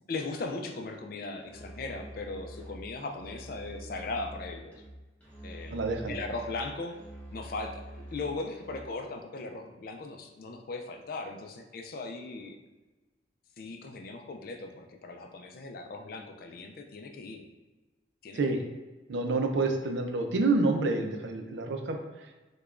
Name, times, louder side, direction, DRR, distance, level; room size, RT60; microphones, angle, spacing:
voice 1, 0.1-4.8 5.4-7.0 7.3-7.8 8.1-12.6 13.6-17.5 18.2-18.6, left 3 dB, 55° left, 4 dB, 0.4 m, -38 dB
Musical instrument, 1.4-9.0, right 1 dB, 10° left, 0.8 m, -46 dB
voice 2, 5.7-6.1 18.3-18.6 19.1-22.3, right 3 dB, 90° right, 4 dB, 0.5 m, -28 dB
4.7 x 2.3 x 2.4 m, 1.2 s
head